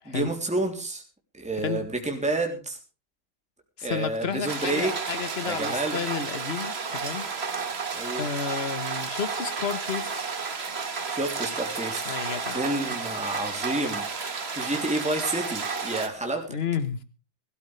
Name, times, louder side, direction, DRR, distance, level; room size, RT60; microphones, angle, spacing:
voice 1, 0.0-1.0 1.3-2.8 3.8-4.9 5.4-6.0 7.9-8.2 11.1-12.2 12.5-16.4, right 2 dB, 5° right, 3.2 m, -29 dB
voice 2, 3.8-7.3 8.2-10.3 12.0-12.6 16.5-17.0, left 6 dB, 35° left, 1.3 m, -31 dB
sound 1, 4.5-16.1, right 5 dB, 35° right, 1.6 m, -32 dB
21.5 x 13.5 x 3.4 m
omnidirectional pair, 2.2 m